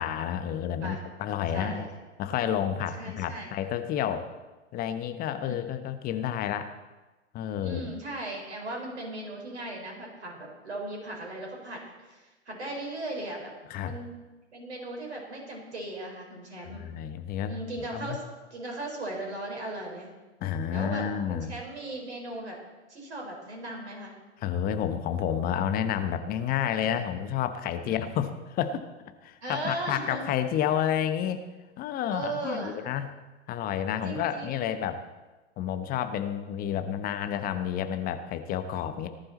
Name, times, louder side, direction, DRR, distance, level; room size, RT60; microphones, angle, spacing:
voice 1, 0.0-1.8 2.2-4.3 4.7-6.7 7.3-8.0 13.7-13.9 16.7-17.5 17.9-18.2 20.4-21.5 24.4-28.8 29.2-31.4 31.8-33.1 33.5-35.0 35.6-39.1, left 9 dB, 25° left, 9 dB, 1.0 m, -30 dB
voice 2, 1.5-1.9 2.9-3.5 5.4-5.6 7.6-13.5 13.8-14.1 14.5-16.8 17.4-18.2 18.5-20.1 20.7-22.6 22.9-24.1 26.7-27.1 27.8-28.1 29.4-30.2 32.1-32.8 34.0-34.7, right 1 dB, 65° right, 0 dB, 4.5 m, -37 dB
18.5 x 11.5 x 4.1 m, 1.2 s
figure-of-eight pair, 100°, 36 cm